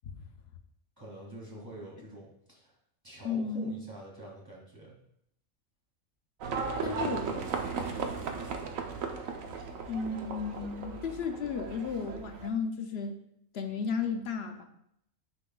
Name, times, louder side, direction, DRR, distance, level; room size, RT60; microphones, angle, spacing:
voice 1, 1.0-2.7 3.0-4.9 6.7-8.1, right 1 dB, 15° right, -4 dB, 2.1 m, -46 dB
voice 2, 3.2-3.8 6.8-7.4 9.9-13.1 13.5-14.7, left 5 dB, 60° left, 6 dB, 0.8 m, -34 dB
Livestock farm animals working animals, 6.4-12.5, right 5 dB, 85° right, 1.1 m, -36 dB
9.7 x 5.3 x 2.3 m, 0.74 s
omnidirectional pair, 1.4 m